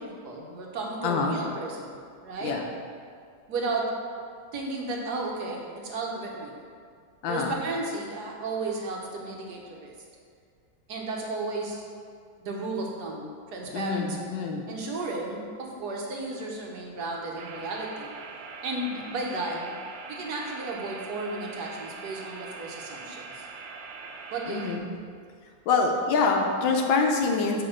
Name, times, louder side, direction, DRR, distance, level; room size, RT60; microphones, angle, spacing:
voice 1, 0.0-2.6 3.5-3.9 4.5-6.5 7.3-9.9 10.9-11.8 12.4-14.2 14.7-18.1 18.6-19.7 20.1-23.4 24.3-24.8, right 2 dB, 65° right, -1 dB, 1.5 m, -34 dB
voice 2, 1.0-1.4 2.4-2.7 7.2-7.6 13.7-14.6 24.5-24.8 25.7-27.6, left 4 dB, 80° left, 2 dB, 1.4 m, -25 dB
sound 1, 17.4-24.8, right 4 dB, 85° right, 1.3 m, -42 dB
8.7 x 2.9 x 6.3 m, 2.1 s
omnidirectional pair, 2.0 m